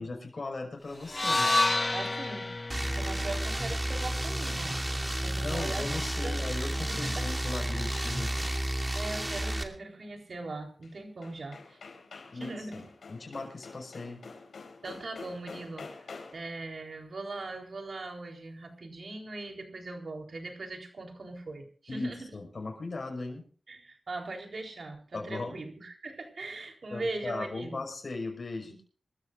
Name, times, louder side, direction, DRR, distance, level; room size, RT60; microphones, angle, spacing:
voice 1, 0.0-1.7 5.4-8.6 12.3-12.8 13.1-14.2 21.9-23.4 25.1-25.5 26.9-28.8, left 3 dB, 55° left, 2 dB, 5.5 m, -38 dB
sound 1, 1.1-5.3, left 2 dB, 30° left, 0.5 m, -30 dB
voice 2, 1.9-2.5 2.9-4.8 5.2-6.5 6.9-7.2 8.9-11.8 12.3-12.9 14.8-16.1 16.3-22.3 23.7-27.8 28.6-28.8, right 2 dB, 65° right, 2 dB, 4.1 m, -40 dB
sound 2, 2.7-9.6, right 1 dB, 20° right, 2.6 m, -31 dB
sound 3, 7.7-8.5 10.8-10.9 11.2-16.6, left 4 dB, 85° left, 4.1 m, -48 dB
26.0 x 13.5 x 2.6 m, 0.41 s
cardioid pair, 65°, 0 cm